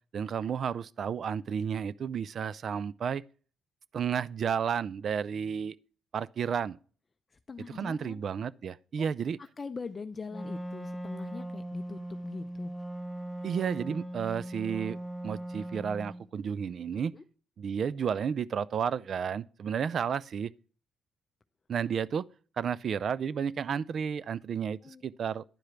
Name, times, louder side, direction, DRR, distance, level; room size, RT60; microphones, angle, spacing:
voice 1, 0.1-3.2 3.9-5.7 6.1-6.8 7.7-9.4 13.4-15.0 15.2-17.1 17.6-20.5 21.7-22.3 22.6-25.4, right 7 dB, 55° right, 0.4 m, -32 dB
voice 2, 7.3-8.2 9.0-9.1 9.4-12.7 17.1-17.2 24.8-25.1, left 4 dB, 30° left, 0.5 m, -42 dB
Wind instrument woodwind instrument, 10.3-16.2, right 1 dB, ahead, 1.4 m, -39 dB
10.5 x 5.0 x 5.7 m
cardioid pair, 90°, 0 cm